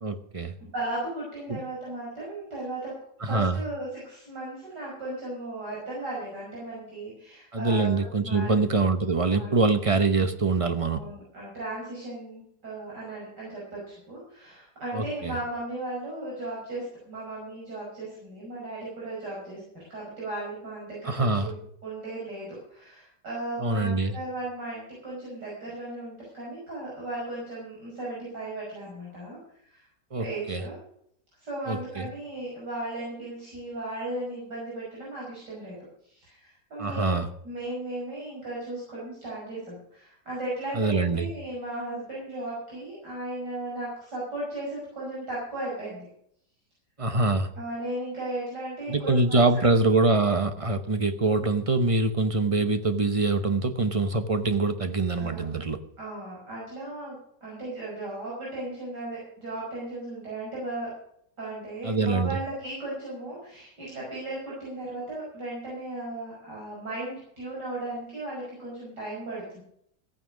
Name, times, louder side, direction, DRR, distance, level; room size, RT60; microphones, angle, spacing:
voice 1, 0.0-0.5 1.5-1.6 3.2-3.6 7.5-11.1 14.9-15.3 21.0-21.5 23.6-24.1 30.1-30.6 31.7-32.1 36.8-37.3 40.7-41.3 47.0-47.5 48.9-55.8 61.8-62.3, right 3 dB, 30° right, 9 dB, 0.6 m, -24 dB
voice 2, 0.7-2.9 3.2-7.9 8.2-8.5 9.3-9.6 10.9-29.9 30.2-30.8 31.4-35.8 36.0-37.2 37.4-46.1 47.5-49.6 55.2-55.4 56.0-60.9 61.4-69.6, right 2 dB, 75° right, -6 dB, 6.3 m, -36 dB
15.0 x 9.3 x 6.3 m, 0.68 s
omnidirectional pair, 1.9 m